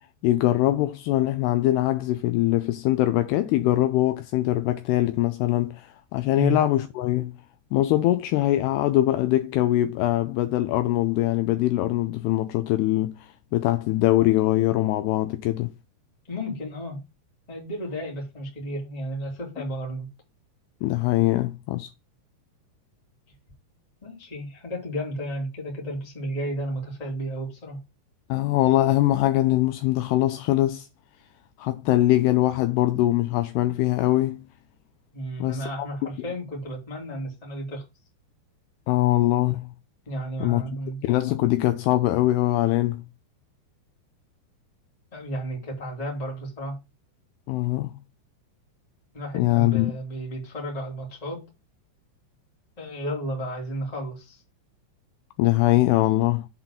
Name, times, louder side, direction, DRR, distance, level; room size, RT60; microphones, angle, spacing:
voice 1, 0.2-7.3 7.7-15.7 20.8-21.9 28.3-30.9 31.6-34.4 35.4-35.9 38.9-39.7 40.4-40.6 41.0-43.0 47.5-47.9 49.3-49.9 55.4-56.5, left 15 dB, 80° left, 2.5 m, -22 dB
voice 2, 16.3-17.0 17.5-20.1 24.0-27.8 35.1-37.8 40.1-41.0 45.1-46.8 49.1-51.4 52.8-54.4, right 1 dB, 10° left, 1.9 m, -33 dB
7.8 x 4.0 x 5.7 m
omnidirectional pair, 5.0 m